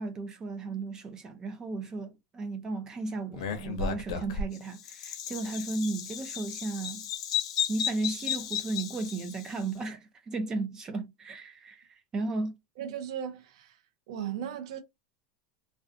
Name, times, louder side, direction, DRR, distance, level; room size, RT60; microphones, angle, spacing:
voice 1, 0.0-7.1 7.7-12.6, right 3 dB, 20° right, 0.4 m, -35 dB
Bird vocalization bird call bird song, 3.3-9.6, left 7 dB, 85° left, 0.6 m, -34 dB
voice 2, 12.8-13.8 14.1-14.8, right 9 dB, 75° right, 0.5 m, -36 dB
2.5 x 2.2 x 2.5 m
supercardioid pair, 155°, 3 cm